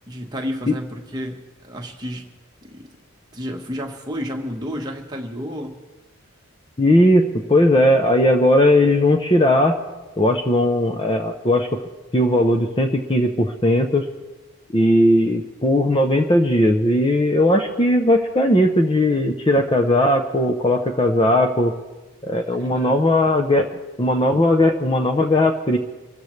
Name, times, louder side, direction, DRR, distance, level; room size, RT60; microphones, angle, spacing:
voice 1, 0.1-2.3 2.6-2.9 3.3-5.8 22.6-23.0, equal, 20° right, 1 dB, 1.4 m, -31 dB
voice 2, 6.8-9.7 10.2-11.8 12.1-14.1 14.7-21.7 22.2-23.7 24.0-25.8, left 1 dB, 25° left, 5 dB, 0.7 m, -18 dB
25.5 x 13.5 x 3.2 m, 1.1 s
head